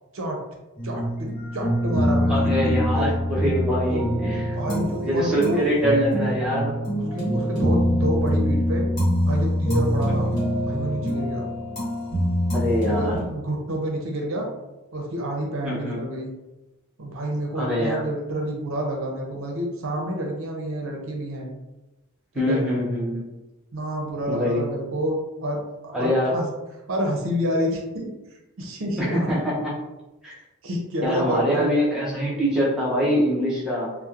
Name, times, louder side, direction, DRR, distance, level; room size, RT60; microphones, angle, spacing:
sound 1, 0.8-13.2, equal, 35° left, 1.1 m, -24 dB
voice 1, 0.8-3.1 3.9-4.0 4.4-5.6 7.0-8.9 9.2-10.3 10.7-11.5 12.9-14.5 14.9-16.3 17.0-21.5 22.3-22.6 23.7-26.5 26.9-28.1 28.6-29.1 30.6-31.7, right 1 dB, 65° right, 0 dB, 0.5 m, -29 dB
voice 2, 2.3-4.6 4.8-6.8 12.5-13.2 15.6-16.0 17.5-18.1 22.3-23.3 24.3-24.7 25.9-26.4 29.0-29.7 30.2-30.4 31.0-34.0, equal, 5° right, -7 dB, 0.5 m, -24 dB
2.9 x 2.0 x 2.3 m, 1.0 s
head